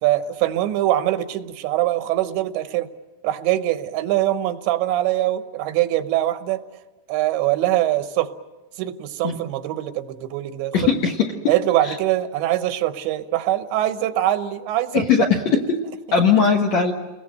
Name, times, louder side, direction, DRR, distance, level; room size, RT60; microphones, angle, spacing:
voice 1, 0.0-2.9 3.2-6.6 7.1-8.3 8.8-10.7 11.5-15.1, right 14 dB, 85° right, 10 dB, 3.3 m, -23 dB
voice 2, 10.7-11.3 11.8-12.0 14.9-15.8 16.1-16.9, left 6 dB, 60° left, 1 dB, 2.0 m, -19 dB
30.0 x 21.0 x 7.8 m, 1.1 s
omnidirectional pair, 5.0 m